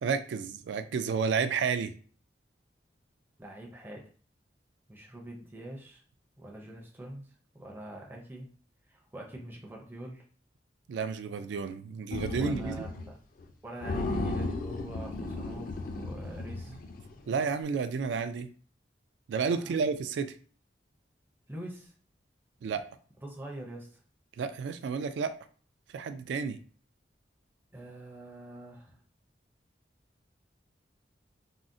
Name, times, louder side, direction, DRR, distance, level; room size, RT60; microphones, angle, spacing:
voice 1, 0.0-1.9 10.9-12.8 17.3-18.5 19.3-20.3 22.6-22.9 24.4-25.3 25.9-26.6, right 5 dB, 85° right, 10 dB, 0.3 m, -31 dB
voice 2, 3.4-4.1 4.9-6.0 6.4-8.6 8.9-10.3 12.3-13.2 13.6-16.8 19.6-19.8 21.5-21.9 23.2-24.0 27.7-29.0, right 1 dB, 10° right, -1 dB, 0.4 m, -45 dB
sound 1, 12.1-13.1 13.4-13.5 13.8-17.2, left 2 dB, 50° left, 0.4 m, -35 dB
3.6 x 2.0 x 2.5 m, 0.43 s
head